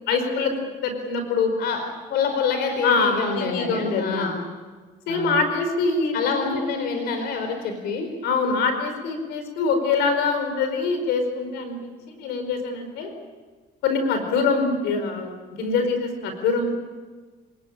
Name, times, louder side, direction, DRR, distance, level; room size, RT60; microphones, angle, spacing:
voice 1, 0.1-0.5 0.8-1.5 2.8-4.4 5.1-6.7 8.2-11.8 12.1-13.1 13.8-16.7, left 4 dB, 85° left, 7 dB, 4.8 m, -24 dB
voice 2, 2.1-4.3 5.1-5.4 6.1-8.1, left 5 dB, 70° left, 5 dB, 4.0 m, -26 dB
27.5 x 18.5 x 8.8 m, 1.4 s
cardioid pair, 110°, 17 cm